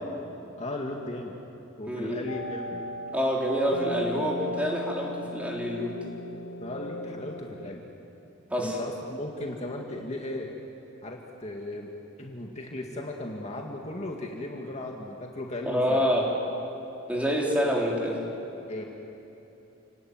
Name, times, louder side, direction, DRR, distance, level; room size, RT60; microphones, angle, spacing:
voice 1, 0.6-1.4 1.8-2.8 6.6-7.8 8.6-10.5 11.0-11.9 12.2-16.1 18.7-18.8, left 1 dB, 35° left, 0 dB, 2.1 m, -36 dB
voice 2, 1.9-2.3 3.1-6.0 8.5-8.8 15.7-16.3 17.1-18.2, equal, 5° right, -2 dB, 4.0 m, -27 dB
sound 1, 2.3-7.4, left 1 dB, 65° left, 4.4 m, -37 dB
29.0 x 19.0 x 9.5 m, 3.0 s
head